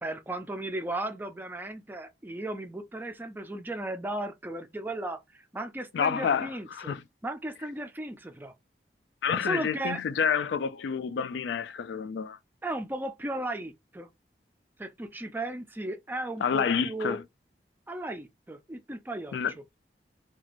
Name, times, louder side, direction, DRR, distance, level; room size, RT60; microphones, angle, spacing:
voice 1, 0.0-7.0 7.2-8.5 9.4-10.0 12.6-14.1 14.8-17.2 17.9-19.4, right 1 dB, 10° right, 0.3 m, -35 dB
voice 2, 5.9-7.0 9.2-12.4 16.4-17.2 19.3-19.5, left 6 dB, 80° left, 0.3 m, -29 dB
2.5 x 2.3 x 2.9 m
head